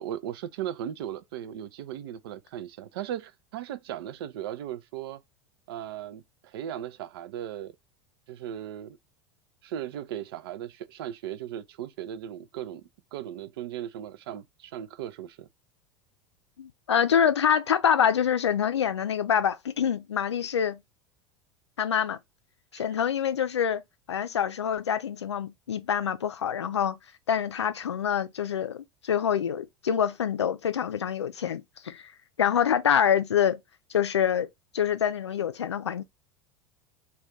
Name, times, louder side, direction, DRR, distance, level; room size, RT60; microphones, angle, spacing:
voice 1, 0.0-5.2 5.7-7.7 8.3-9.0 9.6-12.8 13.1-15.5 22.7-22.8, right 11 dB, 60° right, 0.4 m, -37 dB
voice 2, 16.6-20.8 21.8-22.2 22.7-23.8 24.1-27.0 27.3-32.0 32.4-33.6 33.9-34.5 34.7-36.0, left 8 dB, 75° left, 0.4 m, -26 dB
2.4 x 2.3 x 3.6 m
figure-of-eight pair, 80°, 14 cm